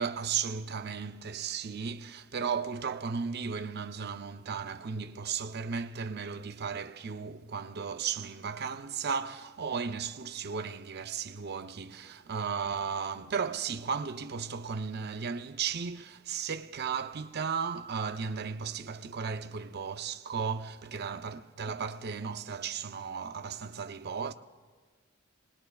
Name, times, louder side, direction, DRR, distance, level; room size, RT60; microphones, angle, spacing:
voice 1, 0.0-24.3, right 6 dB, 55° right, 0.6 m, -35 dB
27.5 x 20.0 x 2.3 m
head